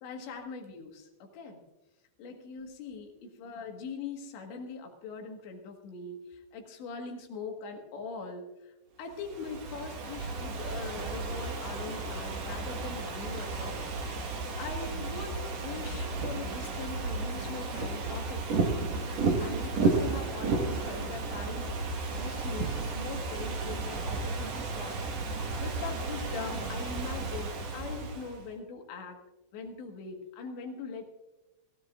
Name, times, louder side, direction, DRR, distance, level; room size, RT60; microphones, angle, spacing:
voice 1, 0.0-1.6 2.2-14.3 14.6-21.8 22.2-25.0 25.6-29.2 29.5-31.0, left 4 dB, 80° left, 3 dB, 3.9 m, -42 dB
Ocean / Fireworks, 9.1-28.4, right 3 dB, 60° right, 1.8 m, -33 dB
21.0 x 15.5 x 2.5 m, 1.0 s
omnidirectional pair, 5.1 m